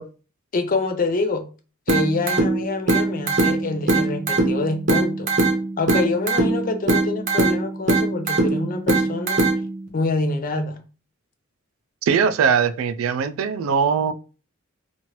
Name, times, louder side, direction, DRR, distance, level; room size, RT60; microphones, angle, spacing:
voice 1, 0.5-1.5 1.9-5.3 5.8-9.5 9.9-10.8, left 3 dB, 40° left, 0.5 m, -26 dB
sound 1, 1.9-9.9, right 2 dB, 40° right, 0.8 m, -22 dB
voice 2, 12.0-14.1, right 6 dB, 80° right, 0.3 m, -20 dB
3.0 x 2.5 x 2.9 m
head